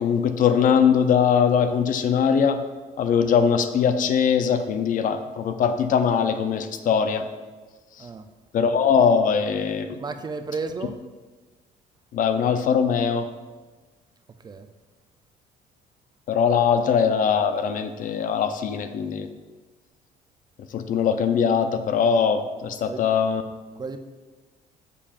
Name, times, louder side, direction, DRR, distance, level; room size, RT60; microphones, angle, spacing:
voice 1, 0.0-2.6 3.0-7.3 8.0-8.1 8.5-10.0 12.1-13.3 16.3-19.3 20.7-23.4, left 7 dB, 50° left, 9 dB, 0.5 m, -21 dB
voice 2, 9.9-10.9 14.4-14.7 22.9-23.0 23.8-24.0, right 4 dB, 25° right, 8 dB, 0.4 m, -33 dB
7.1 x 6.7 x 2.5 m, 1.3 s
cardioid pair, 110°, 17 cm